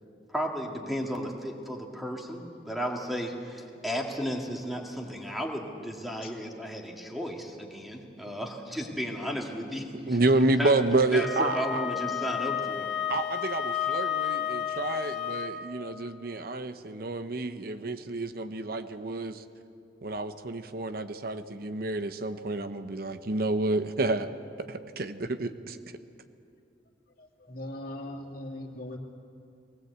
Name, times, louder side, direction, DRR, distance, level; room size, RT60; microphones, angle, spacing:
voice 1, 0.3-10.2 10.6-10.7 11.1-12.9, equal, ahead, 0 dB, 2.0 m, -34 dB
voice 2, 10.1-11.8 13.1-19.4 20.0-24.3 24.7-25.8, right 2 dB, 55° right, 10 dB, 0.8 m, -29 dB
Wind instrument woodwind instrument, 11.1-15.6, left 9 dB, 85° left, 2.3 m, -31 dB
voice 3, 27.2-29.0, left 1 dB, 55° left, 1 dB, 2.4 m, -40 dB
19.5 x 19.0 x 8.1 m, 2.5 s
head